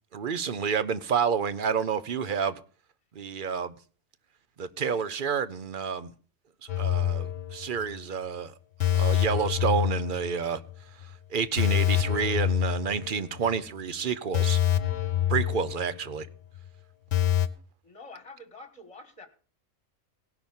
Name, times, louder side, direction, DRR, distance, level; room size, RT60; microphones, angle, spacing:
voice 1, 0.1-2.6 3.1-3.7 4.6-6.1 6.8-8.5 8.9-10.6 11.3-14.6 15.3-16.3, right 6 dB, 45° right, 0.7 m, -29 dB
sound 1, 6.7-8.0 8.2-8.4 8.8-10.7 11.0-11.1 11.6-13.5 13.8-13.9 14.3-16.3 16.6-16.7 17.1-17.5, left 11 dB, 60° left, 1.2 m, -26 dB
voice 2, 17.8-19.3, left 2 dB, 25° left, 1.8 m, -47 dB
18.0 x 6.0 x 7.1 m
omnidirectional pair, 1.5 m